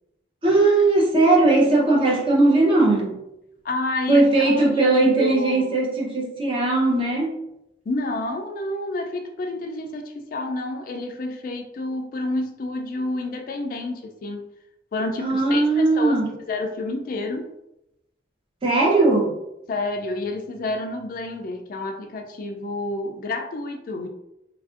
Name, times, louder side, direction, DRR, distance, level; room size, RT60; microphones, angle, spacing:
voice 1, 0.4-3.2 4.1-7.4 15.2-16.3 18.6-19.4, right 2 dB, 30° right, -2 dB, 0.7 m, -19 dB
voice 2, 3.6-5.8 7.9-14.5 14.9-16.2 16.5-17.5 19.7-24.1, left 2 dB, 50° left, 5 dB, 0.3 m, -29 dB
3.2 x 2.5 x 2.4 m, 0.86 s
head